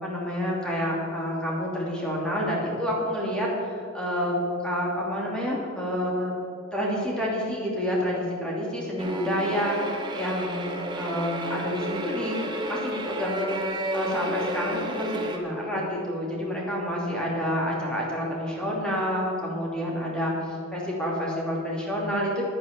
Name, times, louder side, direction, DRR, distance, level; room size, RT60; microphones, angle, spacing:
voice 1, 0.0-6.3 6.7-13.5 13.9-22.4, equal, 5° left, -4 dB, 2.9 m, -28 dB
sound 1, 9.0-15.4, right 1 dB, 20° right, 1.4 m, -32 dB
10.5 x 9.4 x 6.8 m, 2.6 s
head